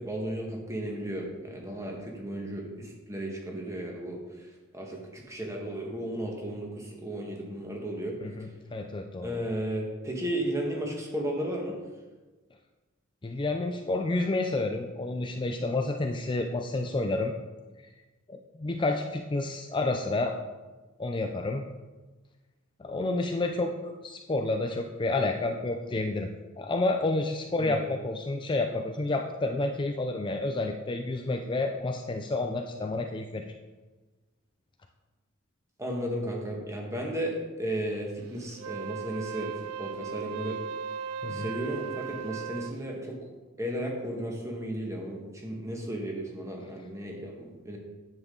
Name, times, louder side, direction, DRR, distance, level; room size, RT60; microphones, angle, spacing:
voice 1, 0.0-8.2 9.2-11.7 27.6-27.9 35.8-39.5 39.8-40.6 41.3-43.2 43.6-47.8, right 1 dB, 15° right, 0 dB, 1.6 m, -34 dB
voice 2, 8.2-9.4 13.2-17.3 18.3-20.4 21.0-21.6 22.8-26.3 26.6-33.5 41.2-41.5, left 2 dB, 25° left, 4 dB, 0.5 m, -30 dB
Wind instrument woodwind instrument, 38.5-42.8, right 7 dB, 90° right, 0.3 m, -37 dB
9.9 x 7.5 x 3.9 m, 1.2 s
head